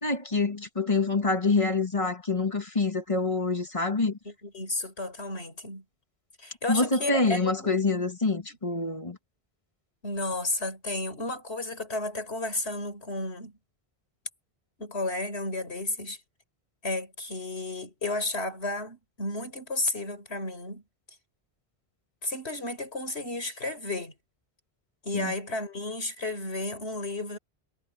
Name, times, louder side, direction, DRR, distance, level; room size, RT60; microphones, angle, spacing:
voice 1, 0.0-4.2 6.7-9.2 25.1-25.3, left 3 dB, 30° left, 1.6 m, -26 dB
voice 2, 4.2-5.8 6.4-7.7 10.0-13.5 14.8-16.2 16.8-20.8 22.2-24.1 25.0-27.4, left 2 dB, 85° left, 4.6 m, -32 dB
omnidirectional pair, 1.1 m